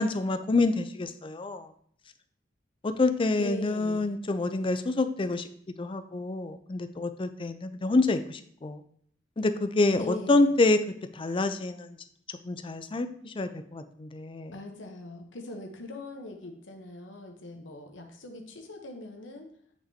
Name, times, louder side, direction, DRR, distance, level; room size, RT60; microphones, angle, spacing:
voice 1, 0.0-1.7 2.8-5.5 5.8-8.8 9.4-10.8 11.1-12.0 12.3-14.5, left 2 dB, 25° left, 9 dB, 0.4 m, -27 dB
voice 2, 3.4-4.1 10.0-10.5 14.5-19.5, left 1 dB, 75° left, 3 dB, 0.9 m, -40 dB
7.4 x 6.0 x 2.8 m, 0.63 s
head